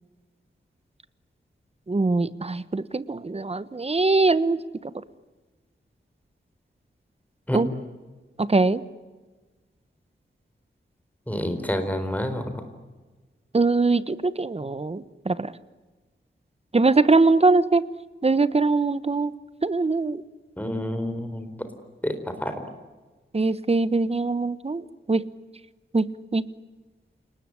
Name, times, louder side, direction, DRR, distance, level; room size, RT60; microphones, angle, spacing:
voice 1, 1.9-4.6 4.8-4.9 7.5-7.7 8.4-8.8 13.5-15.5 16.7-17.8 18.2-19.3 19.6-20.2 23.3-24.8 25.1-25.2 25.9-26.1 26.3-26.4, right 3 dB, 30° right, 15 dB, 1.1 m, -22 dB
voice 2, 11.3-12.4 20.6-21.7 22.0-22.6, left 1 dB, 10° left, 8 dB, 4.2 m, -28 dB
29.0 x 20.0 x 9.8 m, 1.3 s
wide cardioid pair, 120°, 20 cm